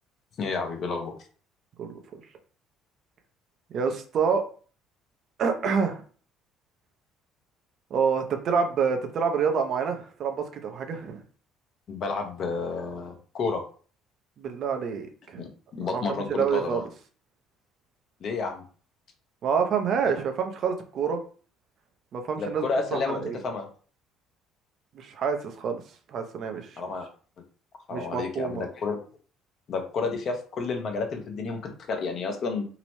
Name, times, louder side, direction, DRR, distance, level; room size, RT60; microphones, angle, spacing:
voice 1, 0.4-1.2 11.9-13.6 15.4-16.8 18.2-18.6 20.0-20.2 22.4-23.7 26.8-27.1 27.9-29.0 29.7-32.7, left 4 dB, 55° left, 4 dB, 0.7 m, -31 dB
voice 2, 3.7-4.4 5.4-6.0 7.9-11.2 14.4-15.4 15.8-16.8 19.4-21.2 22.1-22.7 22.9-23.4 24.9-25.8 26.1-26.8 27.9-28.7, right 6 dB, 60° right, 6 dB, 0.6 m, -27 dB
2.9 x 2.0 x 3.0 m, 0.41 s
supercardioid pair, 70°, 0 cm